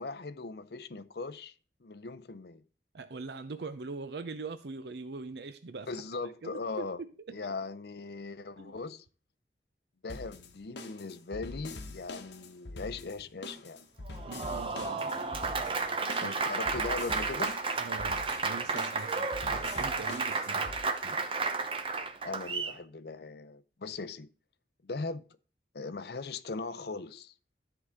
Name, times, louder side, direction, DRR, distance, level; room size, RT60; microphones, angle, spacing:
voice 1, 0.0-1.5 1.8-2.6 5.9-7.0 7.3-9.1 10.0-13.9 16.2-17.6 22.2-24.3 24.8-25.3 25.7-27.3, left 3 dB, 65° left, 0.6 m, -39 dB
voice 2, 2.9-6.0 6.4-6.8 7.3-7.4 8.6-8.7 14.3-15.1 16.2-16.4 17.8-20.7 21.0-21.2, right 4 dB, 70° right, 0.6 m, -42 dB
sound 1, 10.1-20.8, left 2 dB, 85° left, 1.1 m, -45 dB
Applause, 14.1-22.8, right 4 dB, 30° right, 0.8 m, -32 dB
13.0 x 4.8 x 3.6 m
head